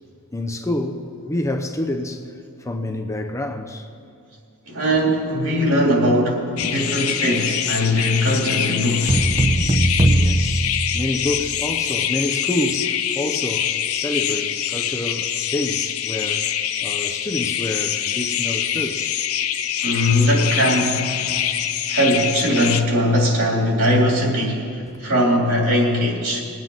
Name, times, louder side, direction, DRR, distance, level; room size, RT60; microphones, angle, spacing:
voice 1, 0.3-3.9 10.2-10.7 10.9-16.5 16.8-19.2 21.4-21.5 24.9-25.0, left 1 dB, 15° left, 0.5 m, -28 dB
voice 2, 4.7-9.3 19.8-21.2 21.9-26.4, equal, 65° right, 2.9 m, -20 dB
sound 1, 6.6-22.8, left 10 dB, 65° left, 0.6 m, -25 dB
sound 2, 9.1-11.6, right 1 dB, 25° right, 0.7 m, -19 dB
22.0 x 9.0 x 3.9 m
head